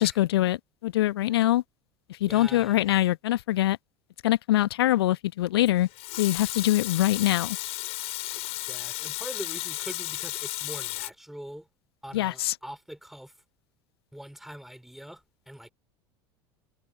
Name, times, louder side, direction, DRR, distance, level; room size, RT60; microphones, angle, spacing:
voice 1, 0.0-1.6 2.1-3.8 4.2-7.6 12.1-12.6, left 15 dB, 65° left, 1.0 m, -24 dB
voice 2, 2.3-2.8 8.7-11.7 12.0-13.3 14.1-15.7, equal, ahead, 3.9 m, -43 dB
Water tap faucet / Sink (filling or washing) / Liquid, 5.7-11.1, left 19 dB, 50° left, 5.2 m, -34 dB
figure-of-eight pair, 75°, 14 cm